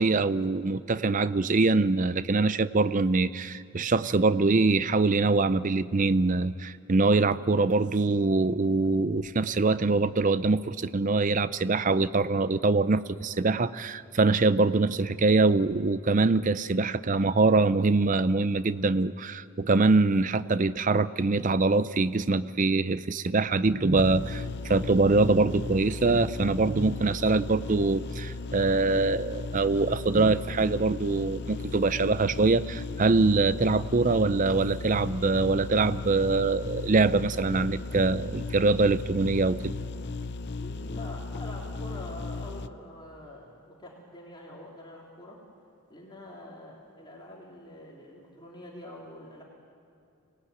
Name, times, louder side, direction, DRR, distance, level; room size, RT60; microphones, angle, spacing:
voice 1, 0.0-39.8, right 3 dB, 35° right, 15 dB, 0.5 m, -24 dB
sound 1, 23.9-42.7, left 3 dB, 50° left, 0.6 m, -36 dB
voice 2, 40.6-45.4 45.9-49.4, left 1 dB, 20° left, -2 dB, 3.1 m, -45 dB
25.5 x 18.5 x 9.3 m, 2.5 s
head